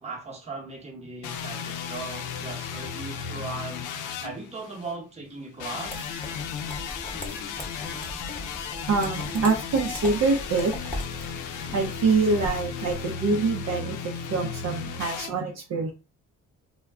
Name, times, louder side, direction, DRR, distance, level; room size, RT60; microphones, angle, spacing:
voice 1, 0.0-3.9 4.2-6.1, right 3 dB, 20° right, 0.9 m, -38 dB
sound 1, 1.2-5.0 5.6-15.3, left 6 dB, 80° left, 0.5 m, -35 dB
sound 2, 5.8-13.1, equal, 5° left, 0.8 m, -39 dB
voice 2, 8.9-10.7 11.7-15.9, right 4 dB, 60° right, 0.6 m, -25 dB
2.2 x 2.1 x 3.4 m
cardioid pair, 90°, 30 cm